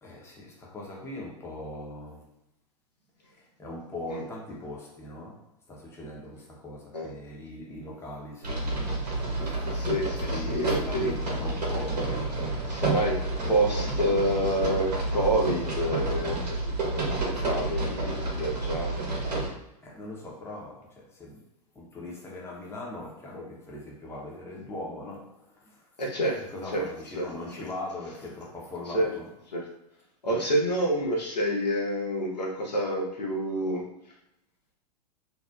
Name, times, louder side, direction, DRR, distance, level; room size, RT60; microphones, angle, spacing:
voice 1, 0.0-2.3 3.3-8.9 10.2-12.8 19.8-21.4 21.7-25.9 26.3-29.3 30.2-30.4, left 1 dB, 10° left, -3 dB, 0.6 m, -40 dB
sound 1, 8.4-19.5, right 2 dB, 75° right, 0.8 m, -30 dB
voice 2, 9.7-11.1 12.7-13.2 13.5-16.4 16.6-19.0 26.0-26.4 26.7-26.8 27.1-27.3 28.9-29.1 29.5-29.6 30.2-33.8, right 1 dB, 90° left, -1 dB, 0.6 m, -28 dB
2.7 x 2.0 x 2.2 m, 0.84 s
figure-of-eight pair, 100°, 21 cm